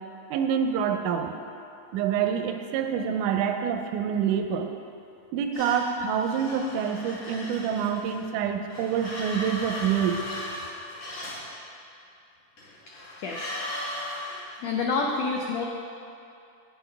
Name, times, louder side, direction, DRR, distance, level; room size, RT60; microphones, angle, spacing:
voice 1, 0.3-1.3 1.9-4.7 5.3-10.2, right 7 dB, 80° right, 5 dB, 2.0 m, -27 dB
sound 1, 5.5-8.2 8.7-11.5 12.6-14.4, left 1 dB, 70° left, 3.4 m, -37 dB
voice 2, 13.2-13.5 14.6-15.7, left 4 dB, 85° left, 0 dB, 1.5 m, -28 dB
10.0 x 8.7 x 3.4 m, 2.6 s
omnidirectional pair, 3.7 m